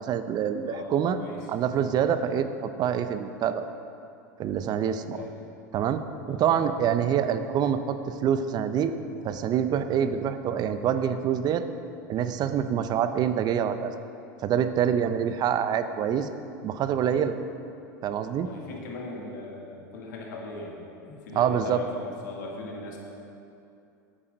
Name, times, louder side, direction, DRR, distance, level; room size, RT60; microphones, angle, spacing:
voice 1, 0.0-1.2 1.5-3.7 4.4-5.2 5.7-6.0 6.3-8.9 9.2-11.6 12.1-13.9 14.4-16.3 16.6-17.4 18.0-18.5 21.3-21.8, right 8 dB, 45° right, 10 dB, 0.6 m, -26 dB
voice 2, 0.7-1.5 2.0-2.2 5.0-5.3 6.3-6.4 15.3-15.4 17.2-17.3 18.4-23.0, left 2 dB, 75° left, -1 dB, 1.9 m, -39 dB
8.9 x 8.7 x 5.2 m, 2.6 s
hypercardioid pair, 90°, 10 cm